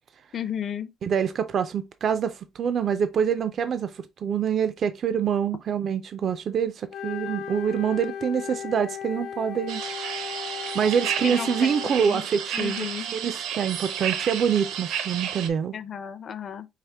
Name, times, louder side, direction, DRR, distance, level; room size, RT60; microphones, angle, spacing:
voice 1, 0.3-0.9 11.2-11.7 12.0-12.2 12.5-13.1 15.7-16.7, left 8 dB, 35° left, 0.5 m, -33 dB
voice 2, 1.0-9.8 10.7-15.7, right 7 dB, 35° right, 0.3 m, -26 dB
Wind instrument woodwind instrument, 6.9-12.1, left 8 dB, 65° left, 1.1 m, -36 dB
sound 1, 9.7-15.5, right 8 dB, 75° right, 0.7 m, -32 dB
4.9 x 2.9 x 3.3 m
cardioid pair, 180°, 0 cm